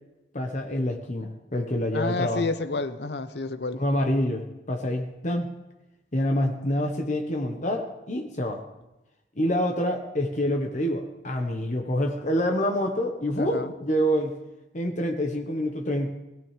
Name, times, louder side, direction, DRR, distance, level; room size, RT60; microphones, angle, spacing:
voice 1, 0.3-2.5 3.7-5.5 6.1-8.6 9.4-14.3 14.7-16.1, equal, 45° left, 3 dB, 1.2 m, -27 dB
voice 2, 1.9-3.8 13.4-13.7, left 3 dB, 70° left, 12 dB, 0.8 m, -30 dB
21.0 x 15.0 x 3.4 m, 0.99 s
head